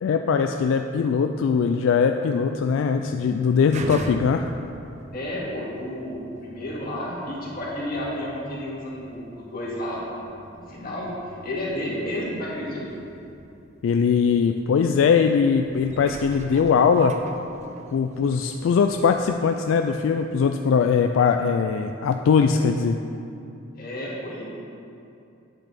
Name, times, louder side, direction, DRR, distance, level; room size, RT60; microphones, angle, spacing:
voice 1, 0.0-4.5 13.8-17.1 17.9-23.0, left 6 dB, 80° left, 5 dB, 0.3 m, -21 dB
sound 1, 3.0-20.4 20.9-21.0, right 2 dB, 35° right, 0.5 m, -42 dB
voice 2, 5.1-10.2 10.7-13.0 23.8-24.6, left 1 dB, 50° left, -6 dB, 2.1 m, -31 dB
9.0 x 4.0 x 6.7 m, 2.7 s
head